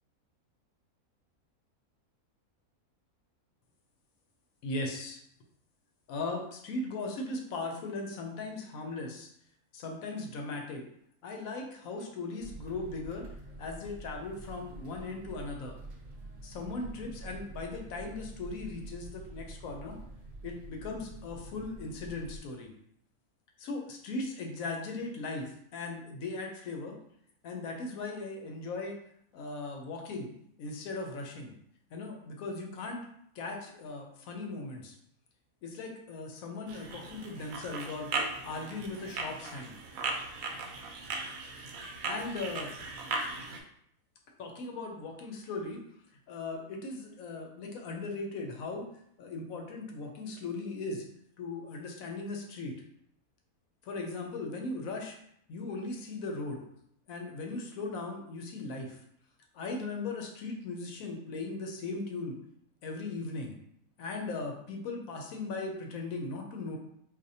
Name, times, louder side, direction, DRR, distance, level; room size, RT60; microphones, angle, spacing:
voice 1, 4.6-5.2 6.1-9.3 9.7-10.8 11.2-13.2 13.6-15.8 16.4-20.0 20.4-22.7 23.6-26.9 27.4-29.0 29.3-30.3 30.6-31.5 31.9-33.1 33.3-34.9 35.6-38.1 38.4-39.8 42.0-42.7 44.4-45.8 46.3-48.9 49.2-51.0 51.4-52.7 53.8-55.2 55.5-56.6 57.1-59.0 59.5-62.4 62.8-63.5 64.0-66.8, left 3 dB, 75° left, 2 dB, 1.1 m, -38 dB
sound 1, 12.4-22.4, right 2 dB, 55° right, 0.7 m, -47 dB
sound 2, 36.7-43.6, right 3 dB, 75° right, 1.0 m, -38 dB
4.2 x 2.6 x 2.7 m, 0.71 s
omnidirectional pair, 1.5 m